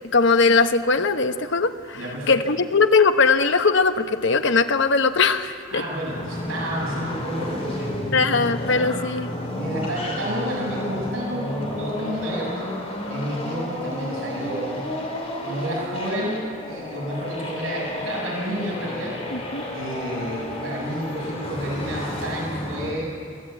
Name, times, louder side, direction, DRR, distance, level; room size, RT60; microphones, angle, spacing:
voice 1, 0.1-5.8 8.1-9.3 19.3-19.6, left 4 dB, 60° left, 8 dB, 1.0 m, -20 dB
voice 2, 1.9-2.4 5.7-7.9 9.5-12.7 13.1-14.9 15.4-19.2 19.7-23.1, equal, 80° right, -3 dB, 7.0 m, -30 dB
sound 1, 6.0-22.9, left 1 dB, 30° left, 3.9 m, -31 dB
22.0 x 16.0 x 8.8 m, 2.3 s
head